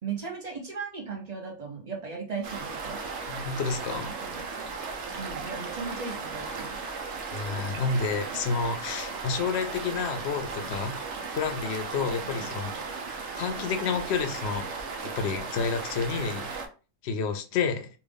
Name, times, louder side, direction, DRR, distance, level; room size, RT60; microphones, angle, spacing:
voice 1, 0.0-3.0 4.2-4.6 5.2-6.8 7.8-8.0 8.3-8.4 12.2-12.5 12.8-12.9, right 5 dB, 40° right, 0.7 m, -37 dB
sound 1, 2.4-16.7, right 4 dB, 65° right, 1.0 m, -36 dB
voice 2, 3.3-4.1 7.3-11.0 11.3-12.7 13.4-14.8 15.0-16.5 17.0-17.9, left 5 dB, 65° left, 0.8 m, -30 dB
3.6 x 2.4 x 3.4 m
omnidirectional pair, 1.3 m